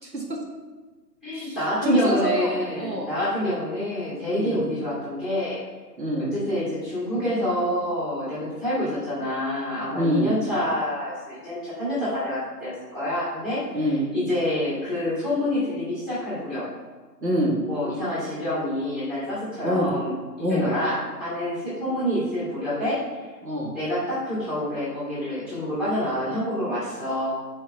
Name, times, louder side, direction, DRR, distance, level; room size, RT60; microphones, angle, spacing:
voice 1, 0.0-0.4 1.3-1.6 1.8-3.1 4.3-4.7 6.0-6.3 9.9-10.3 13.7-14.0 17.2-17.6 19.6-19.9 20.4-20.7 23.4-23.8, equal, 80° right, -1 dB, 1.8 m, -25 dB
voice 2, 1.2-5.6 6.2-13.8 14.1-16.7 17.7-20.1 20.5-23.0 23.7-27.3, left 1 dB, ahead, -10 dB, 1.4 m, -27 dB
4.5 x 4.4 x 5.8 m, 1.3 s
figure-of-eight pair, 140°, 50 cm